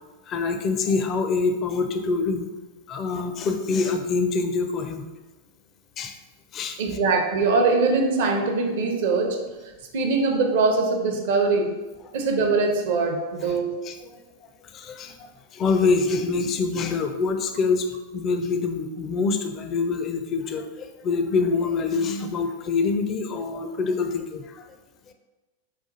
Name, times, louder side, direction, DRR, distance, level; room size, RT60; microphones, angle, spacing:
voice 1, 0.3-2.5 2.9-5.0 6.0-6.2 6.5-6.8 13.8-14.2 14.7-15.1 15.5-17.9 18.1-24.7 25.1-25.2, left 4 dB, 30° left, 6 dB, 0.4 m, -25 dB
voice 2, 6.8-9.4 9.9-11.8 12.1-13.8, right 3 dB, 55° right, 3 dB, 0.6 m, -22 dB
4.1 x 2.3 x 4.0 m, 1.2 s
figure-of-eight pair, 90°, 0 cm